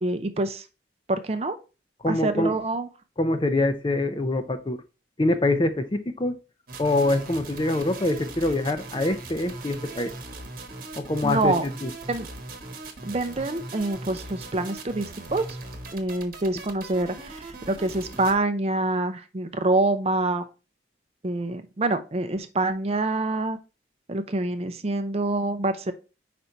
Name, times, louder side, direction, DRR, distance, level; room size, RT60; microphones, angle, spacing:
voice 1, 0.0-0.6 1.1-1.6 2.1-2.9 11.2-11.6 12.1-12.3 13.0-15.5 15.9-20.5 21.2-23.6 24.1-25.9, right 2 dB, 35° right, 9 dB, 0.5 m, -26 dB
voice 2, 2.0-2.6 3.2-4.8 5.2-6.4 6.8-10.1 11.0-11.9, left 2 dB, 25° left, 9 dB, 0.5 m, -25 dB
sound 1, 6.7-18.4, right 3 dB, 50° right, 1.1 m, -40 dB
5.1 x 4.1 x 4.5 m, 0.31 s
head